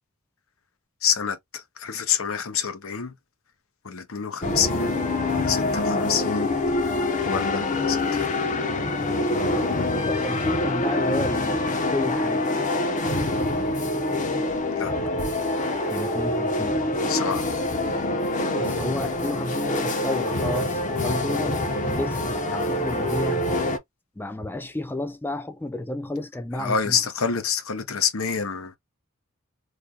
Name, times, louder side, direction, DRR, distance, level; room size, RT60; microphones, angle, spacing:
voice 1, 1.0-3.1 3.8-4.9 5.3-6.5 7.3-8.3 14.7-14.9 17.1-17.5 26.6-28.8, left 7 dB, 75° left, 0.9 m, -27 dB
sound 1, 4.4-23.8, left 2 dB, 35° left, 0.8 m, -25 dB
Explosion, 4.4-7.1, right 2 dB, 35° right, 0.6 m, -41 dB
voice 2, 9.5-12.5 15.9-16.8 18.6-23.4 24.2-27.0, left 1 dB, 10° left, 0.4 m, -32 dB
3.3 x 2.2 x 3.8 m
head